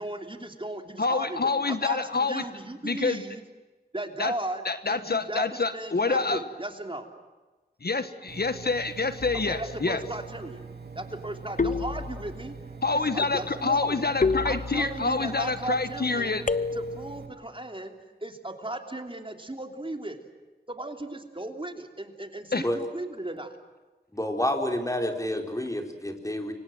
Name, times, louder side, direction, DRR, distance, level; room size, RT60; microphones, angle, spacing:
voice 1, 0.0-3.4 3.9-4.6 4.9-7.1 9.5-10.7 10.9-12.6 12.9-14.0 14.4-16.5 16.7-17.9 18.2-20.2 20.7-23.5, right 1 dB, 30° right, 5 dB, 3.2 m, -36 dB
voice 2, 1.0-2.4 2.8-3.2 4.2-4.3 4.6-6.4 7.8-10.0 12.8-16.4 22.5-22.6, left 4 dB, 65° left, 10 dB, 1.3 m, -27 dB
Engine, 8.3-17.3, right 5 dB, 65° right, 3.3 m, -43 dB
sound 1, 9.2-9.7 11.6-12.5 14.2-15.2 16.5-17.2, left 4 dB, 50° left, 0.8 m, -29 dB
voice 3, 24.1-26.5, left 1 dB, 20° left, 3 dB, 4.4 m, -29 dB
30.0 x 24.5 x 7.8 m, 1.2 s
wide cardioid pair, 50°, 17 cm